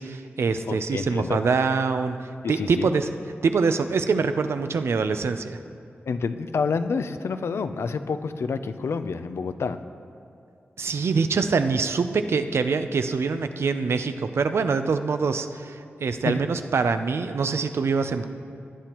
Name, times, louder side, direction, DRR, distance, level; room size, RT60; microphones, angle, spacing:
voice 1, 0.0-3.1 3.4-5.6 10.8-18.3, right 4 dB, 75° right, 9 dB, 0.5 m, -24 dB
voice 2, 0.7-1.4 2.4-2.9 6.1-9.8 16.3-16.4, left 5 dB, 80° left, 10 dB, 0.5 m, -28 dB
18.5 x 10.0 x 3.0 m, 2.4 s
wide cardioid pair, 110°, 4 cm